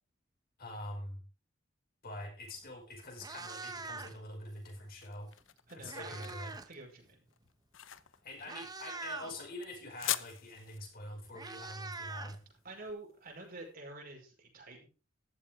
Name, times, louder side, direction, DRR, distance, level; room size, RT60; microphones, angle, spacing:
voice 1, 0.6-1.2 2.0-5.3 5.7-6.6 8.2-12.4, left 1 dB, 50° left, 1 dB, 5.6 m, -45 dB
Meow, 2.6-2.7 3.1-4.3 5.4-6.7 7.0-7.3 8.0-8.1 8.4-9.4 10.7-10.8 11.0-12.9, right 3 dB, 20° right, 0.9 m, -44 dB
sound 1, 4.5-13.5, left 13 dB, 80° left, 0.8 m, -44 dB
voice 2, 5.7-6.3 6.7-7.2 12.6-14.9, right 2 dB, 50° right, 1 dB, 5.3 m, -48 dB
15.0 x 12.5 x 3.7 m, 0.34 s
head